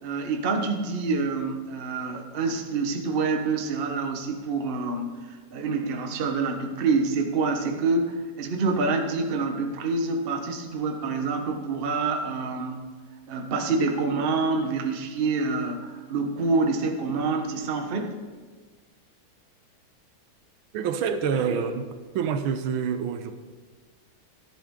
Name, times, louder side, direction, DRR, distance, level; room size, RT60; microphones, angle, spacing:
voice 1, 0.0-5.2 5.5-12.8 13.3-18.2 21.3-21.6, right 4 dB, 40° right, 0.9 m, -27 dB
voice 2, 20.7-21.9 22.1-23.4, right 7 dB, 80° right, 1.5 m, -27 dB
14.0 x 11.0 x 3.7 m
omnidirectional pair, 2.3 m